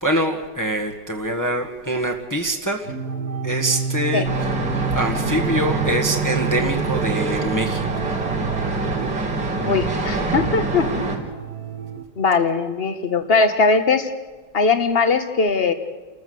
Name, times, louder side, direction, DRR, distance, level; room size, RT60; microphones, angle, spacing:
voice 1, 0.0-2.9 3.4-4.3 4.9-8.2, right 1 dB, 10° left, 2 dB, 1.7 m, -24 dB
sound 1, 2.8-12.0, right 6 dB, 60° right, 1.9 m, -29 dB
sound 2, 4.2-11.2, right 3 dB, 85° right, 5.0 m, -25 dB
voice 2, 9.6-11.0 12.2-14.1 14.5-15.7, left 4 dB, 35° left, 8 dB, 1.6 m, -20 dB
30.0 x 14.5 x 7.9 m, 1.4 s
omnidirectional pair, 1.9 m